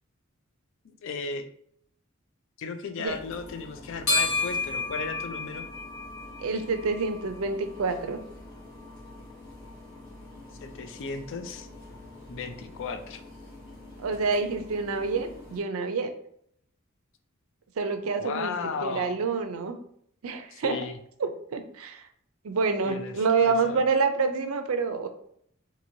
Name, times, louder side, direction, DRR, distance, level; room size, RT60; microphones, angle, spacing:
voice 1, 0.8-1.5 2.6-5.7 10.6-11.7 12.3-13.2 18.2-19.2 20.5-21.0 22.8-23.8, left 5 dB, 65° left, 8 dB, 0.4 m, -35 dB
sound 1, 3.1-15.6, left 3 dB, 80° left, 1.3 m, -36 dB
voice 2, 6.4-8.2 14.0-16.1 17.8-18.5 18.8-19.8 20.2-20.8 21.2-22.0 22.4-25.1, right 4 dB, 80° right, 7 dB, 0.4 m, -27 dB
2.9 x 2.7 x 2.7 m, 0.67 s
head